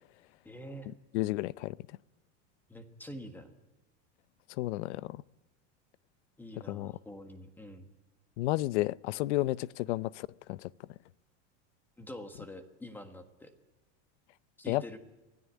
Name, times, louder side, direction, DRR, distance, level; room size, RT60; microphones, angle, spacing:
voice 1, 0.4-0.9 2.7-3.5 6.4-7.9 12.0-13.5 14.6-15.0, equal, 5° left, 1.5 m, -46 dB
voice 2, 1.1-1.8 4.5-5.2 6.7-6.9 8.4-10.7 14.7-15.0, left 17 dB, 70° left, 0.7 m, -32 dB
24.0 x 16.5 x 8.3 m
supercardioid pair, 175°, 36 cm